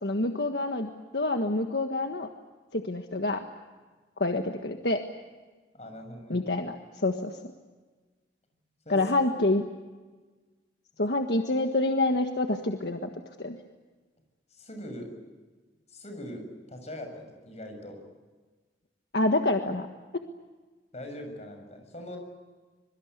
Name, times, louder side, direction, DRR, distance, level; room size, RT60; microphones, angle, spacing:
voice 1, 0.0-2.3 2.7-3.4 4.2-5.0 6.3-7.3 8.9-9.6 11.0-13.1 13.4-13.6 19.1-19.9, left 2 dB, 70° left, 5 dB, 1.6 m, -27 dB
voice 2, 5.7-6.4 8.9-9.0 14.6-15.1 15.9-18.0 20.9-22.2, left 1 dB, 40° left, 5 dB, 7.2 m, -41 dB
25.5 x 23.5 x 8.2 m, 1.3 s
head